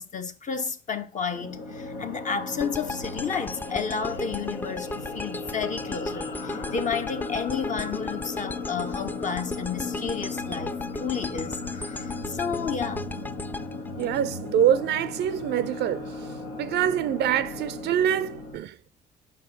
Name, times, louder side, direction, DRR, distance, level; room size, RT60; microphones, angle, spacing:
voice 1, 0.0-13.1, left 6 dB, 40° left, 0.9 m, -31 dB
sound 1, 1.3-18.6, left 3 dB, 80° left, 1.0 m, -36 dB
sound 2, 2.6-14.8, left 2 dB, 10° left, 0.3 m, -37 dB
voice 2, 14.0-16.3 16.6-18.7, right 10 dB, 60° right, 0.5 m, -25 dB
8.1 x 5.5 x 3.9 m
hypercardioid pair, 45°, 20 cm